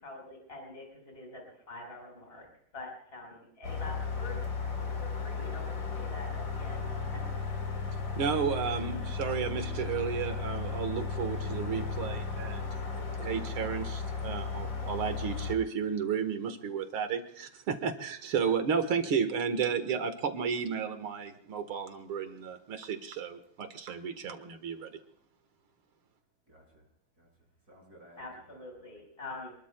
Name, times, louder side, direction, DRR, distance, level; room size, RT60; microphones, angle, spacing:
voice 1, 0.0-2.5 2.7-4.4 4.7-7.2 28.2-29.5, left 2 dB, 25° left, 1 dB, 4.8 m, -45 dB
sound 1, 3.6-15.6, left 4 dB, 60° left, 4.6 m, -35 dB
voice 2, 8.2-12.7 13.0-24.9, right 6 dB, 85° right, 7 dB, 2.4 m, -33 dB
voice 3, 8.9-10.0 26.5-26.9 27.2-28.6, right 1 dB, 45° right, 0 dB, 7.3 m, -56 dB
28.0 x 22.0 x 2.3 m, 0.68 s
omnidirectional pair, 2.3 m